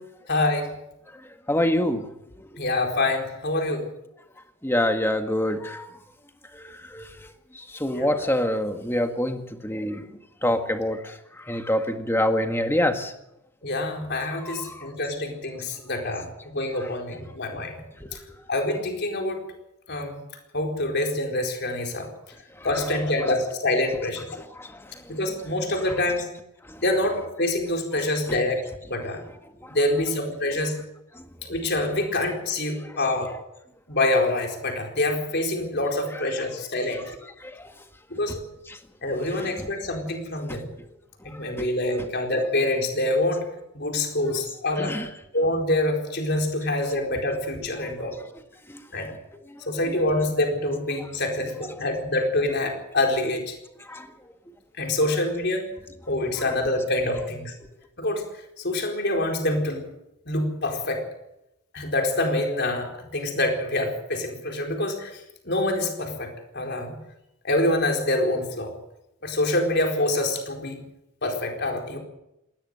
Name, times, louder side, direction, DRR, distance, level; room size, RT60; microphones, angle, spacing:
voice 1, 0.3-0.7 2.6-3.9 7.9-8.3 13.6-17.8 18.1-18.2 18.5-19.4 19.9-20.2 20.5-22.1 22.6-24.3 25.1-26.3 26.8-28.6 28.9-29.2 29.7-30.8 31.4-33.3 33.9-37.0 38.1-38.4 39.0-40.7 41.2-43.4 43.7-44.9 45.3-48.2 48.9-49.1 49.7-53.5 54.8-55.7 56.1-57.5 58.0-58.2 58.6-59.9 60.3-61.0 61.7-66.3 66.5-67.0 67.4-68.7 69.2-70.8 71.2-72.0, left 1 dB, 50° left, 2 dB, 4.3 m, -26 dB
voice 2, 1.5-2.1 2.4-2.6 4.6-5.9 6.5-10.1 10.4-13.1 14.4-14.9 18.0-18.4 22.6-22.7 24.3-25.2 26.7-26.8 28.3-28.4 29.0-29.1 29.6-29.7 31.1-31.2 32.8-32.9 36.9-37.0 37.4-37.7 40.5-40.6 41.3-41.7 44.8-45.1 48.7-48.8 49.5-49.6 53.9-54.1 57.6-57.7, left 1 dB, 10° left, 6 dB, 1.7 m, -27 dB
20.0 x 17.0 x 7.9 m, 0.87 s
head